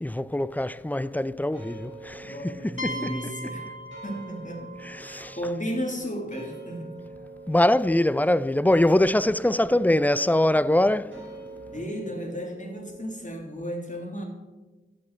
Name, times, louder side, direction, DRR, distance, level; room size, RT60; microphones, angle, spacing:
voice 1, 0.0-3.1 4.9-5.4 7.5-11.2, left 1 dB, 10° left, 0.3 m, -23 dB
sound 1, 1.5-13.2, right 3 dB, 65° right, 4.1 m, -46 dB
voice 2, 2.2-3.7 4.0-4.7 5.0-7.0 11.7-14.2, equal, 35° left, 2.3 m, -34 dB
sound 2, 2.8-6.4, equal, 75° left, 1.4 m, -39 dB
11.5 x 8.4 x 4.3 m
wide cardioid pair, 40°, 21 cm